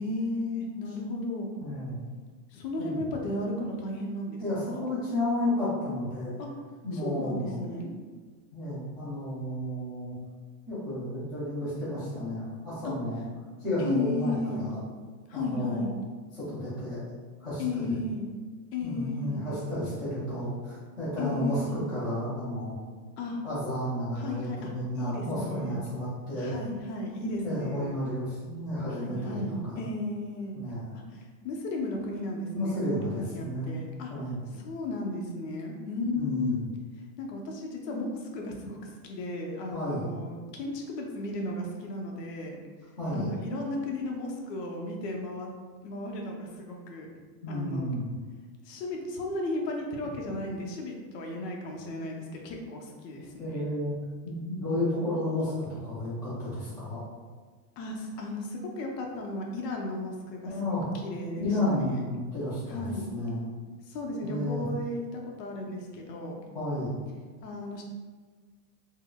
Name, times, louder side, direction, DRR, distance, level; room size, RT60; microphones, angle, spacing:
voice 1, 0.0-1.5 2.5-4.4 4.7-4.8 6.4-6.5 7.0-7.9 12.8-12.9 13.8-14.6 15.3-15.9 17.6-18.3 18.7-19.5 21.2-21.8 23.2-23.4 24.2-25.8 26.4-28.0 29.0-30.6 31.1-34.1 34.5-36.6 37.2-38.8 39.0-42.6 43.1-45.5 45.8-47.1 47.5-48.0 48.6-53.7 57.8-62.0 62.7-63.1 63.9-66.4 67.4-67.8, left 2 dB, 85° left, 1 dB, 0.8 m, -34 dB
voice 2, 1.6-2.0 2.8-3.0 4.4-6.3 6.8-7.6 8.5-10.2 10.7-13.2 13.6-14.8 15.3-15.9 16.3-17.0 17.4-18.0 18.8-22.7 23.4-26.6 27.4-29.8 30.5-30.9 32.5-33.7 34.1-34.4 36.1-36.6 39.7-40.1 43.0-43.3 47.4-48.1 53.4-53.9 54.2-57.0 60.4-60.8 61.4-63.4 64.2-64.6 66.5-66.9, left 1 dB, 10° left, -12 dB, 0.4 m, -32 dB
3.6 x 2.1 x 2.2 m, 1.5 s
supercardioid pair, 165°, 48 cm